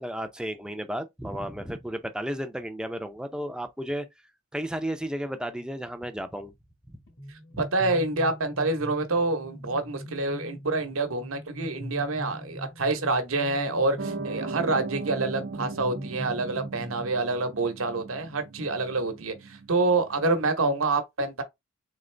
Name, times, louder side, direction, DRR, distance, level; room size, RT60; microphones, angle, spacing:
voice 1, 0.0-4.1 4.5-6.5 6.9-7.0 7.5-7.6, equal, 5° right, 0.5 m, -33 dB
sound 1, 7.1-17.5, equal, 50° left, 1.3 m, -42 dB
voice 2, 7.3-21.4, right 3 dB, 80° right, 1.0 m, -27 dB
Piano, 14.0-20.5, right 3 dB, 55° right, 0.5 m, -38 dB
3.9 x 3.5 x 3.3 m
head